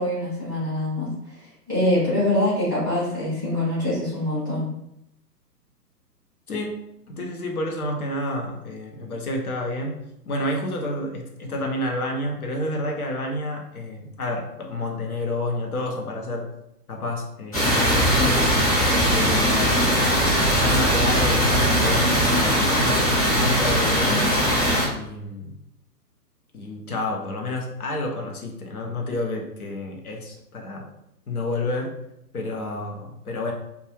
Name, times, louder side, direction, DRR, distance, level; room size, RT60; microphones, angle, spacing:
voice 1, 0.0-4.7, left 1 dB, 15° right, -13 dB, 0.5 m, -24 dB
voice 2, 6.5-6.8 7.1-10.0 10.3-16.5 16.9-18.6 19.1-20.0 20.4-24.3 24.9-25.5 26.5-30.9 31.3-31.9 32.3-33.5, left 2 dB, 60° left, 1 dB, 0.7 m, -29 dB
sound 1, 17.5-24.8, equal, 25° left, 0.7 m, -20 dB
2.3 x 2.3 x 3.0 m, 0.81 s
figure-of-eight pair, 130°, 49 cm